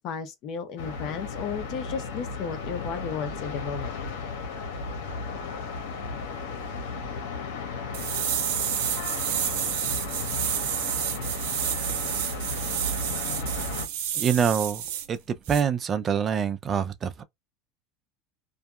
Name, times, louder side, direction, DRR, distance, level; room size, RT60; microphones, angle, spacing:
voice 1, 0.0-3.9, left 6 dB, 45° left, 0.7 m, -34 dB
sound 1, 0.8-13.9, left 3 dB, 85° left, 0.8 m, -34 dB
sound 2, 7.9-15.1 15.5-15.6, right 10 dB, 80° right, 0.8 m, -30 dB
voice 2, 14.2-14.8 15.1-15.2 15.5-17.2, right 7 dB, 25° right, 0.3 m, -25 dB
2.7 x 2.2 x 2.3 m
supercardioid pair, 150°, 0 cm